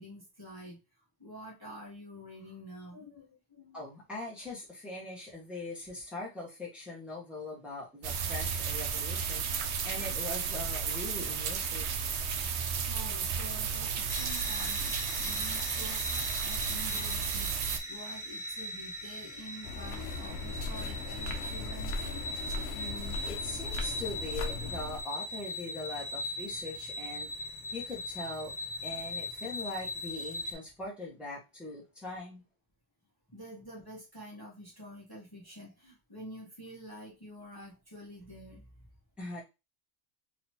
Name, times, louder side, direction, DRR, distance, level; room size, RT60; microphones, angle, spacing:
voice 1, 0.0-4.0 11.9-12.3 12.9-17.6 17.9-22.2 33.3-38.7, equal, 20° left, -5 dB, 1.3 m, -48 dB
voice 2, 3.7-11.9 22.7-28.5 28.8-32.4 39.2-39.4, left 2 dB, ahead, -5 dB, 1.4 m, -41 dB
sound 1, 8.0-17.8, right 6 dB, 70° right, 0.9 m, -33 dB
sound 2, 14.1-30.5, left 1 dB, 40° left, 1.1 m, -39 dB
sound 3, 19.6-25.0, left 3 dB, 65° left, 0.9 m, -38 dB
4.0 x 2.9 x 2.9 m, 0.25 s
omnidirectional pair, 1.2 m